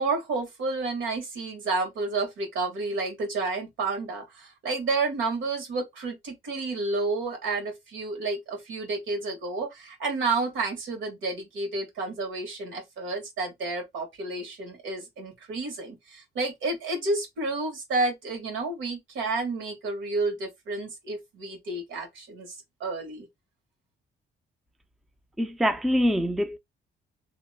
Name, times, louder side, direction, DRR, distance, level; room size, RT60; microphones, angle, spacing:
voice 1, 0.0-22.5 22.8-23.3, right 3 dB, 75° right, 1.5 m, -30 dB
voice 2, 25.4-26.6, equal, ahead, 0.4 m, -24 dB
2.8 x 2.1 x 3.3 m
cardioid pair, 90°, 20 cm